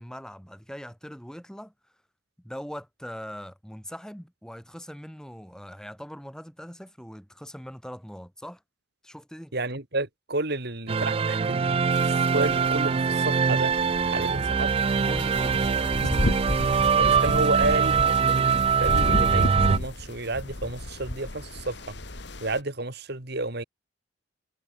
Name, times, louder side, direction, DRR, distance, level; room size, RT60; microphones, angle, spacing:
voice 1, 0.0-1.7 2.4-8.6 9.0-9.5 15.0-16.3, equal, 5° left, 5.7 m, -41 dB
voice 2, 9.5-12.0 12.3-13.7 14.0-14.7 17.0-21.9 22.4-23.6, right 2 dB, 55° right, 3.0 m, -31 dB
sound 1, 10.9-19.8, right 6 dB, 30° right, 0.3 m, -23 dB
sound 2, 11.9-22.6, left 1 dB, 60° left, 2.4 m, -32 dB
head